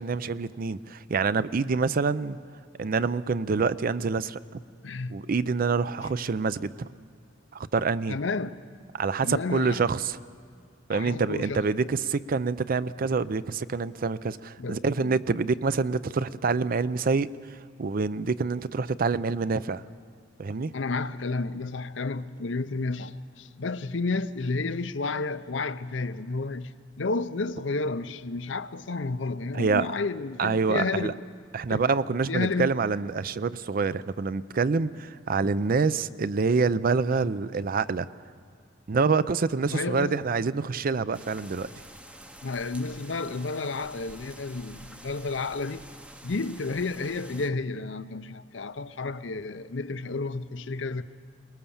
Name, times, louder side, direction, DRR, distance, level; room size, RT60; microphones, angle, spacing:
voice 1, 0.0-2.4 2.8-4.4 5.1-6.9 7.5-8.2 8.9-10.2 10.9-19.8 20.4-20.7 29.5-29.9 30.4-31.1 31.5-38.1 38.9-41.7, right 4 dB, 50° right, 0.5 m, -26 dB
voice 2, 4.8-5.3 8.1-8.5 9.2-9.8 10.9-11.6 14.6-15.2 20.7-26.7 27.0-31.2 31.7-31.9 32.3-32.7 39.7-40.3 42.4-45.9 46.2-51.0, left 3 dB, 75° left, 0.7 m, -31 dB
sound 1, 41.1-47.5, right 1 dB, 5° right, 0.7 m, -48 dB
22.5 x 19.5 x 7.1 m
head